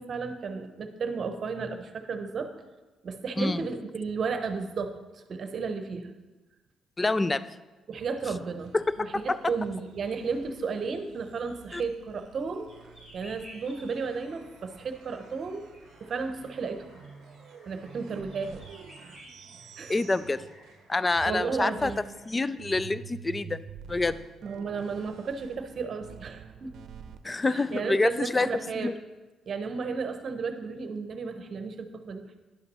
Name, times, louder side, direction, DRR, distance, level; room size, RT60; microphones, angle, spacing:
voice 1, 0.0-2.5 3.0-5.0 5.3-6.1 7.9-8.7 9.0-9.1 9.4-12.7 13.1-15.7 16.0-16.9 17.7-18.7 19.8-19.9 21.2-22.0 24.4-26.7 27.5-28.9 29.5-32.4, right 5 dB, 50° right, 7 dB, 0.9 m, -33 dB
voice 2, 7.0-7.4 8.7-8.8 9.3-9.4 11.7-11.8 19.9-20.5 20.9-21.9 22.3-24.2 27.2-28.5 28.7-28.9, left 3 dB, 20° left, 16 dB, 0.4 m, -27 dB
sound 1, 8.6-20.9 21.1-27.2, right 7 dB, 75° right, 0.7 m, -49 dB
sound 2, 12.7-22.5, equal, 45° left, 3.2 m, -55 dB
10.5 x 5.7 x 5.5 m, 1.2 s
cardioid pair, 90°, 0 cm